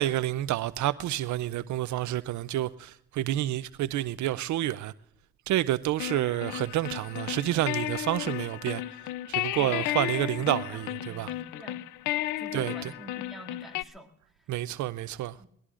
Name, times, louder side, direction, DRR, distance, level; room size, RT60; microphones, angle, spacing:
voice 1, 0.0-4.9 5.5-8.8 9.3-11.3 12.5-12.9 14.5-15.4, right 14 dB, 70° right, 0.5 m, -29 dB
sound 1, 6.0-13.8, left 15 dB, 90° left, 0.5 m, -34 dB
voice 2, 10.7-11.8 12.4-14.1 14.4-14.5 15.4-15.5, right 1 dB, ahead, 2.2 m, -47 dB
22.5 x 20.0 x 2.5 m
cardioid pair, 90°, 30 cm